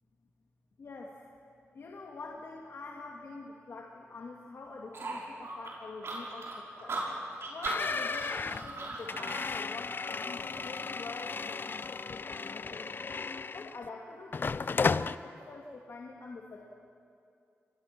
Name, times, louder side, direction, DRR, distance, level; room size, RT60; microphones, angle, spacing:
voice 1, 0.8-1.3 1.7-7.0 7.5-13.0 13.5-16.7, left 3 dB, 60° left, -1 dB, 2.4 m, -46 dB
sound 1, 4.9-9.5, right 2 dB, 65° right, 5.9 m, -38 dB
sound 2, 7.7-13.9 14.3-15.2, left 4 dB, 45° left, 0.5 m, -34 dB
28.5 x 23.5 x 6.1 m, 2.5 s
cardioid pair, 70°, 5 cm